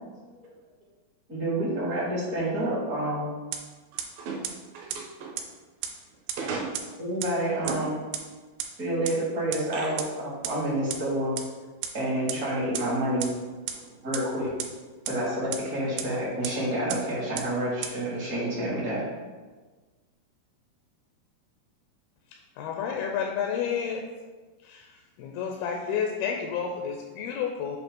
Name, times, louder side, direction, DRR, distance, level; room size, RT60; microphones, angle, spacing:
voice 1, 1.3-3.3 7.0-8.0 8.8-11.4 11.9-13.3 14.0-14.5 15.0-19.0, right 1 dB, 50° right, -8 dB, 1.1 m, -28 dB
sound 1, 3.5-3.6 4.0-4.1 4.4-4.5 4.9-5.0 5.4-5.5 5.8-5.9 6.3-6.4 6.7-6.8 7.2-7.3 7.7-7.8 8.1-8.2 8.6-8.7 9.0-9.1 9.5-9.6 10.0-10.1 10.4-10.5 10.9-11.0 11.4-11.5 11.8-11.9 12.3-12.4 12.7-12.8 13.2-13.3 13.7-13.8 14.1-14.2 14.6-14.7 15.1-15.2 15.5-15.6 16.0-16.1 16.4-16.5 16.9-17.0 17.4-17.5 17.8-17.9, right 11 dB, 90° right, 2.6 m, -30 dB
voice 2, 3.9-5.4 6.4-6.8 7.6-7.9 9.7-9.9, right 4 dB, 70° right, 0 dB, 2.5 m, -35 dB
voice 3, 22.6-24.0 24.6-27.8, left 7 dB, 80° left, 1 dB, 2.4 m, -30 dB
7.9 x 2.7 x 5.2 m, 1.3 s
omnidirectional pair, 4.6 m